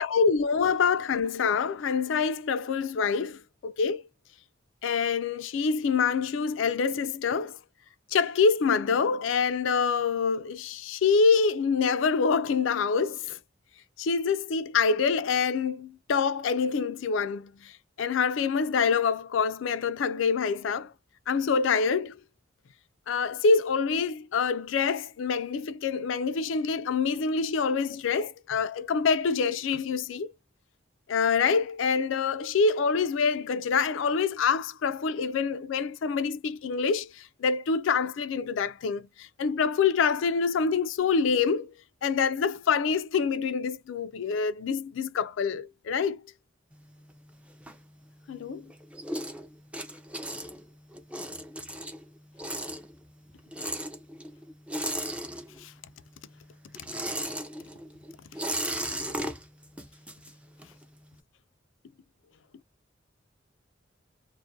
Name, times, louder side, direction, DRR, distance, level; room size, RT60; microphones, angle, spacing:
voice 1, 0.0-4.0 4.8-7.6 8.1-13.4 14.0-17.7 18.0-20.9 21.3-22.2 23.1-30.3 31.1-41.7 42.0-46.2 48.3-48.7 55.6-55.7, left 5 dB, 75° left, 0.4 m, -26 dB
sound 1, 46.7-48.3 48.7-55.9 56.1-60.8, right 1 dB, 5° right, 0.4 m, -36 dB
2.4 x 2.1 x 2.6 m
head